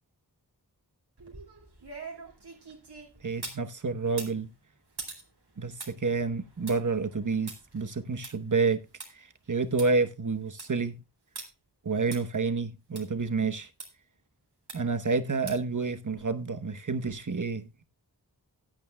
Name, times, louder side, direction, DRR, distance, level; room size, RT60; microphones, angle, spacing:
sound 1, 1.2-3.6 4.1-9.1 9.5-9.6 9.8-9.9 10.3-10.8 11.4-11.5 12.1-12.2 13.0-13.1 13.8-13.9 14.7-15.0 15.5-15.8 16.2-16.3, right 3 dB, 80° right, 2.5 m, -44 dB
voice 1, 3.2-4.5 5.6-8.9 9.1-11.0 11.8-13.7 14.7-17.8, right 4 dB, 50° right, 1.1 m, -29 dB
16.5 x 9.1 x 2.2 m
wide cardioid pair, 45°, 39 cm